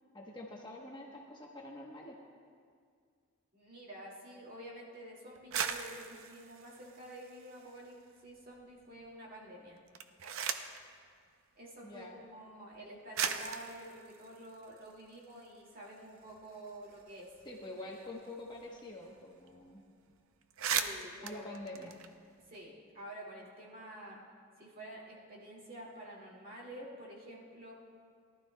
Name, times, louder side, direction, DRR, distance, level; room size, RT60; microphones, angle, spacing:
voice 1, 0.1-2.2 11.8-12.1 17.4-19.8 21.2-22.0, left 1 dB, 20° left, -2 dB, 1.0 m, -46 dB
voice 2, 3.5-9.8 11.6-17.3 20.7-21.5 22.5-24.2 24.6-27.7, right 1 dB, 45° right, -3 dB, 2.2 m, -49 dB
sound 1, 5.3-7.9 8.3-9.0 9.8-10.9 11.9-12.0 12.7-12.8 13.1-15.5 15.8-15.9 16.2-18.8 19.0-19.2 19.5-19.7 20.1-20.2 20.4-22.6, right 7 dB, 80° right, 0.5 m, -39 dB
18.5 x 12.0 x 2.2 m, 2.1 s
head